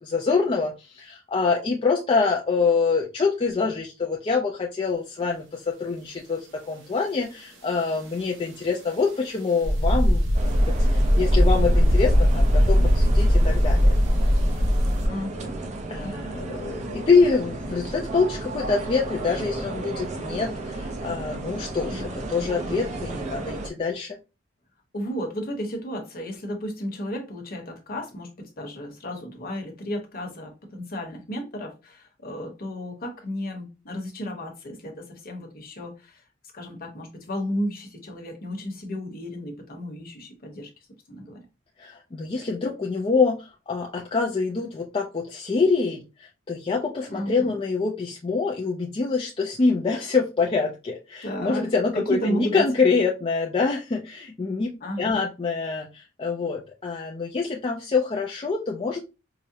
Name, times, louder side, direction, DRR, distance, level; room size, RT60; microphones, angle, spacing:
voice 1, 0.0-13.9 15.9-22.0 22.3-24.2 41.8-54.7 55.0-59.0, left 4 dB, 25° left, 0.4 m, -25 dB
sound 1, 9.6-15.1, equal, 65° right, 0.9 m, -19 dB
sound 2, 10.3-23.7, right 2 dB, 35° right, 0.5 m, -34 dB
voice 2, 15.0-16.4 21.8-22.1 24.9-36.2 36.5-40.7 41.1-41.5 47.1-47.6 51.2-52.6 54.8-55.3, equal, 50° left, 1.0 m, -33 dB
4.8 x 2.0 x 2.7 m
head